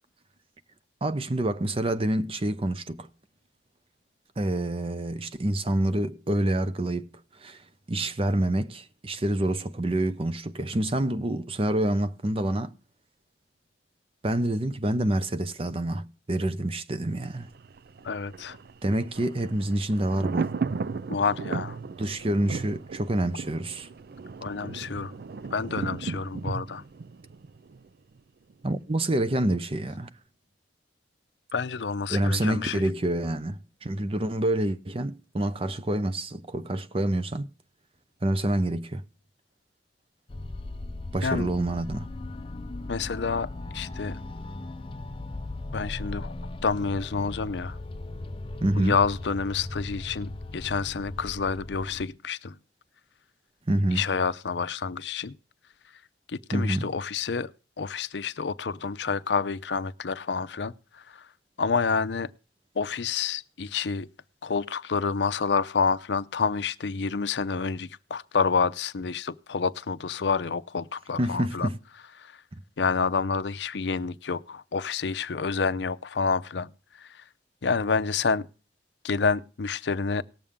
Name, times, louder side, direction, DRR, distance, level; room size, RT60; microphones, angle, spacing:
voice 1, 1.0-3.1 4.4-7.1 7.4-7.6 7.9-12.7 14.2-17.5 18.8-20.5 22.0-23.9 28.6-30.1 32.1-37.5 38.2-39.0 41.1-42.1 48.6-49.0 53.7-54.0 56.5-56.9 71.2-71.8 72.5-72.6, right 1 dB, 30° right, 0.7 m, -27 dB
Thunder, 17.3-28.2 28.5-28.6, right 4 dB, 60° right, 0.4 m, -36 dB
voice 2, 18.0-18.6 21.1-21.8 24.4-25.1 25.5-26.8 31.5-32.8 41.2-41.5 42.9-44.2 45.7-46.3 46.6-47.8 48.8-52.6 53.9-55.3 56.3-57.5 57.8-61.3 61.6-62.3 62.8-64.1 64.4-71.7 72.2-72.4 72.8-76.7 77.0-77.2 77.6-78.5 79.0-80.2, left 5 dB, 75° left, 0.6 m, -28 dB
sound 1, 40.3-52.1, left 2 dB, 30° left, 0.5 m, -38 dB
19.0 x 7.1 x 3.6 m
head